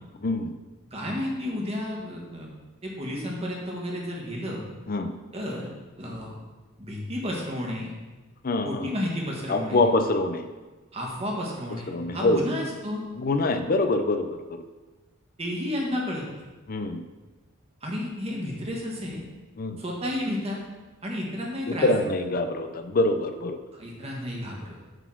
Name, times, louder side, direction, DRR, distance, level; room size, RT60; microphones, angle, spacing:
voice 1, 0.2-0.5 4.9-5.1 8.4-8.9 9.5-10.5 11.9-12.4 13.1-14.4 16.7-17.0 19.6-19.8 21.7-23.6, left 2 dB, 45° left, 8 dB, 0.5 m, -25 dB
voice 2, 0.9-2.5 2.8-4.6 5.3-5.7 6.0-6.4 6.8-8.0 8.6-9.8 10.9-13.0 15.4-16.2 17.8-19.2 19.8-20.6 21.0-21.9 23.7-24.8, left 1 dB, 30° right, -2 dB, 1.5 m, -32 dB
8.0 x 4.1 x 5.9 m, 1.2 s
head